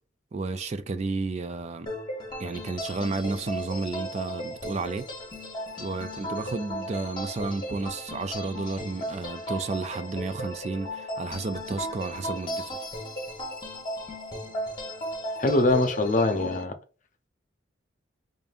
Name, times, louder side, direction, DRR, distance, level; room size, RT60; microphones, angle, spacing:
voice 1, 0.3-1.9 2.4-5.1 5.8-12.8, right 3 dB, 35° right, 0.3 m, -32 dB
sound 1, 1.9-16.6, equal, 25° left, 1.1 m, -36 dB
voice 2, 15.4-16.7, left 2 dB, 40° left, 0.7 m, -23 dB
5.1 x 2.6 x 2.5 m
head